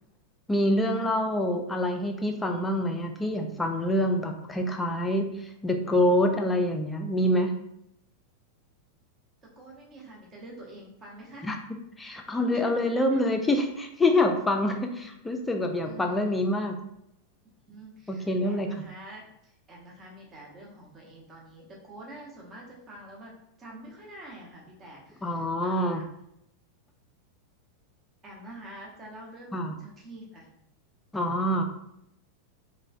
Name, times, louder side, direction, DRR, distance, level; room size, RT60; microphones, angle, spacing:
voice 1, 0.5-7.5 11.4-16.8 18.1-18.7 25.2-26.0 29.5-29.7 31.1-31.6, left 1 dB, 10° left, 4 dB, 0.3 m, -26 dB
voice 2, 9.6-11.5 12.5-13.2 14.7-15.2 15.8-16.4 17.7-26.2 28.2-30.5, right 1 dB, 25° right, -2 dB, 0.8 m, -47 dB
3.0 x 2.1 x 2.4 m, 0.77 s
figure-of-eight pair, 90°, 0 cm